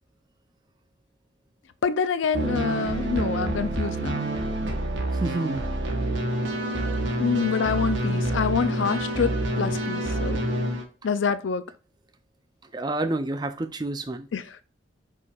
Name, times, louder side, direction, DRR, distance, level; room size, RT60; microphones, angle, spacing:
voice 1, 1.8-4.3 7.2-10.4 11.0-11.6 14.3-14.6, left 6 dB, 80° left, 0.5 m, -26 dB
sound 1, 2.3-10.8, right 1 dB, 75° right, 1.0 m, -27 dB
voice 2, 5.1-5.7 12.7-14.3, right 2 dB, 20° right, 0.4 m, -29 dB
4.8 x 4.3 x 2.3 m
head